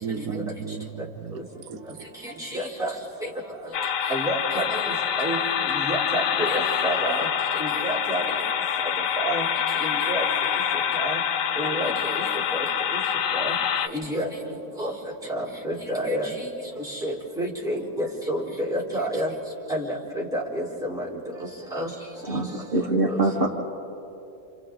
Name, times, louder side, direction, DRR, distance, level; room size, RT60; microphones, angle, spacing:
voice 1, 0.0-2.1, right 6 dB, 85° right, 9 dB, 1.1 m, -35 dB
voice 2, 2.4-2.9 4.1-4.8 5.2-5.4 5.7-7.3 7.6-8.2 9.2-9.4 9.8-10.2 10.9-11.2 11.6-12.2 12.5-12.6 13.4-13.5 13.9-14.3 14.8-14.9 15.3-16.5 16.9-19.3 19.7-21.1 21.7-21.9 22.3-22.4 23.1-23.2, right 1 dB, ahead, -5 dB, 4.0 m, -29 dB
sound 1, 3.7-13.9, left 8 dB, 80° left, 1.1 m, -26 dB
voice 3, 22.3-23.5, right 2 dB, 40° right, -3 dB, 1.6 m, -24 dB
28.5 x 28.5 x 3.8 m, 2.9 s
omnidirectional pair, 1.4 m